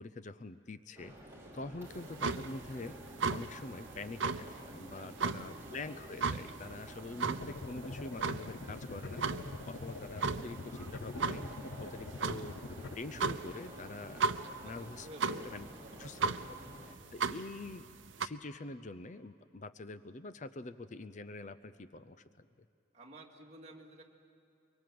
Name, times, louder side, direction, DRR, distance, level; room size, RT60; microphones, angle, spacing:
voice 1, 0.0-11.4 11.8-12.6 12.9-14.3 14.6-15.7 16.0-16.4 16.8-17.9 18.2-22.5, left 3 dB, 40° left, 13 dB, 0.5 m, -45 dB
sound 1, 0.9-16.9, right 1 dB, 15° right, 3.1 m, -51 dB
sound 2, 1.9-18.3, right 4 dB, 90° right, 0.7 m, -37 dB
voice 2, 5.0-5.8 14.6-16.7 22.9-24.0, right 1 dB, 35° right, 0 dB, 2.3 m, -54 dB
sound 3, 7.4-12.9, left 3 dB, 85° left, 0.7 m, -45 dB
24.0 x 23.5 x 7.7 m, 2.7 s
head